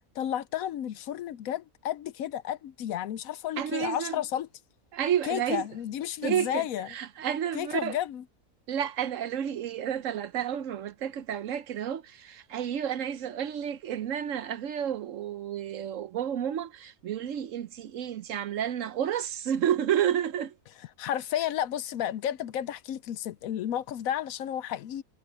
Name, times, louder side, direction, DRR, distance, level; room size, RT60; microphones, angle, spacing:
voice 1, 0.2-4.5 5.3-6.9 7.5-8.2 21.0-25.0, left 11 dB, 70° left, 1.0 m, -32 dB
voice 2, 3.6-4.2 4.9-5.7 6.2-8.0 8.7-20.5, right 9 dB, 65° right, 0.9 m, -31 dB
omnidirectional pair, 1.6 m